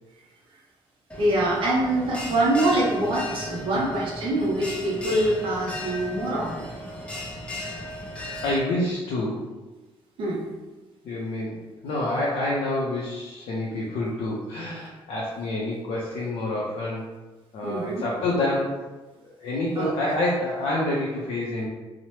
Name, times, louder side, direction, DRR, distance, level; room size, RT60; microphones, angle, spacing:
Bell, 1.1-8.6, left 1 dB, 10° left, 0.4 m, -36 dB
voice 1, 1.2-6.7 10.2-10.4 17.6-18.0 19.8-20.2, right 1 dB, 60° right, -4 dB, 0.6 m, -24 dB
voice 2, 8.4-9.4 11.0-17.1 17.5-18.8 19.2-21.7, left 1 dB, 90° left, -5 dB, 0.5 m, -28 dB
2.9 x 2.0 x 3.0 m, 1.2 s
cardioid pair, 160°, 10 cm